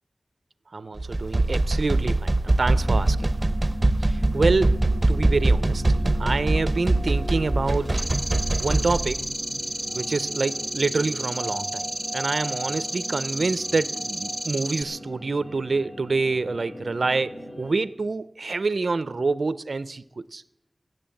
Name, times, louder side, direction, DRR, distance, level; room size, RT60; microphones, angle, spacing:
voice 1, 0.7-3.3 4.0-8.0 8.6-9.2 9.9-11.9 12.1-20.4, right 3 dB, 80° right, 16 dB, 0.4 m, -27 dB
sound 1, 1.0-9.1, right 2 dB, 35° right, 0.8 m, -23 dB
sound 2, 2.6-17.8, equal, 85° left, 3.2 m, -38 dB
sound 3, 8.0-14.8, right 1 dB, 10° right, 0.9 m, -32 dB
17.0 x 7.8 x 7.7 m, 0.88 s
wide cardioid pair, 60°, 0 cm